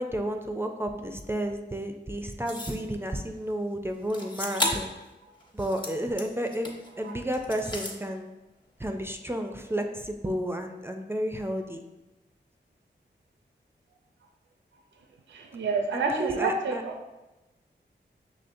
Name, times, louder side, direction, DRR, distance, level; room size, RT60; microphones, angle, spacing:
voice 1, 0.0-4.9 5.5-6.7 7.0-8.3 8.8-11.8 15.9-16.8, equal, 10° right, 4 dB, 0.4 m, -32 dB
sound 1, 2.5-2.9 4.1-5.0 5.4-6.9 7.3-8.0, left 1 dB, 25° left, 0.8 m, -33 dB
voice 2, 15.3-17.0, right 4 dB, 75° right, 3 dB, 0.4 m, -29 dB
5.6 x 3.1 x 2.6 m, 1.0 s
wide cardioid pair, 75°, 19 cm